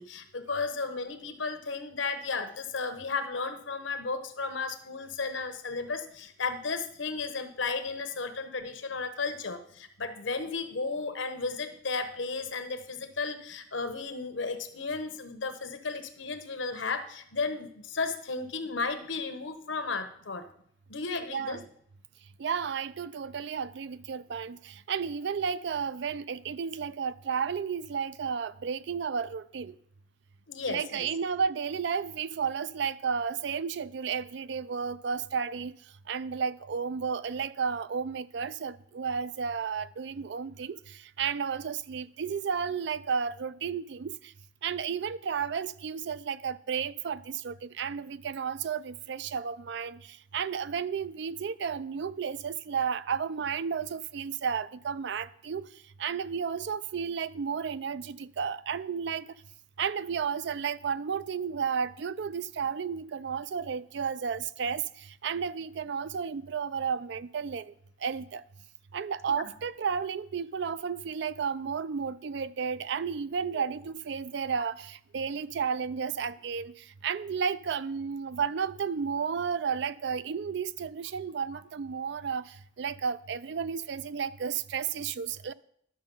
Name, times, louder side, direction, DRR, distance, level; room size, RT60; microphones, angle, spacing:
voice 1, 0.0-20.4 20.9-21.6 30.5-31.1 69.3-69.4 73.5-73.7, left 4 dB, 75° left, 1.0 m, -34 dB
voice 2, 21.3-21.6 22.4-29.8 30.7-35.7 36.1-44.3 44.6-55.7 56.0-59.3 59.8-67.7 68.0-68.4 68.9-85.5, right 6 dB, 60° right, 0.4 m, -32 dB
11.5 x 6.4 x 5.4 m
head